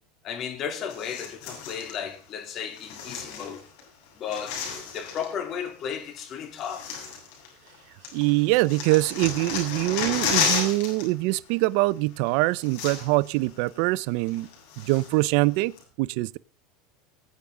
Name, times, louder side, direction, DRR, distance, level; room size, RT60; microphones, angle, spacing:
voice 1, 0.2-3.6 4.2-4.6 4.9-6.9, left 7 dB, 40° left, 3.1 m, -34 dB
sound 1, 0.9-2.0 2.7-3.8 4.1-5.3 6.1-6.2 6.6-7.8 8.0-11.1 11.3-11.5 12.3-12.4 12.6-13.3 13.7-13.8 14.3-15.2 15.8-15.9, left 6 dB, 70° left, 7.9 m, -32 dB
voice 2, 8.1-14.5 14.8-16.4, right 21 dB, 65° right, 0.5 m, -24 dB
21.0 x 8.6 x 3.7 m
supercardioid pair, 130°, 0 cm